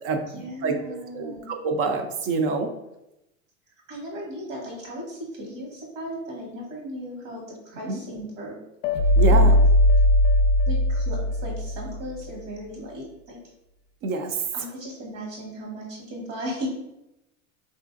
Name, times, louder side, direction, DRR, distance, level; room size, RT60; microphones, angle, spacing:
voice 1, 0.4-1.5 3.9-8.6 9.3-9.6 10.7-13.4 14.5-16.8, equal, 70° right, -3 dB, 1.3 m, -36 dB
voice 2, 1.1-2.7 7.9-8.0 9.2-9.5 14.0-14.4, right 4 dB, 35° right, 5 dB, 0.4 m, -26 dB
sound 1, 8.8-12.0, left 1 dB, 60° left, 0.5 m, -19 dB
3.5 x 2.5 x 2.5 m, 0.89 s
hypercardioid pair, 100°, 40 cm